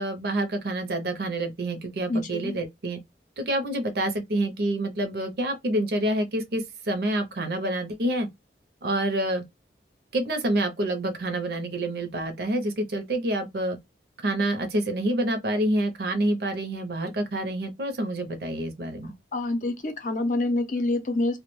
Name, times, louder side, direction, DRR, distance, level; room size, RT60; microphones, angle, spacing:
voice 1, 0.0-3.0 3.4-8.3 8.8-9.4 10.1-13.8 14.2-19.1, right 1 dB, 60° right, 0.6 m, -27 dB
voice 2, 2.1-2.6 19.3-21.4, left 2 dB, 45° left, 0.5 m, -27 dB
2.2 x 2.1 x 3.0 m
head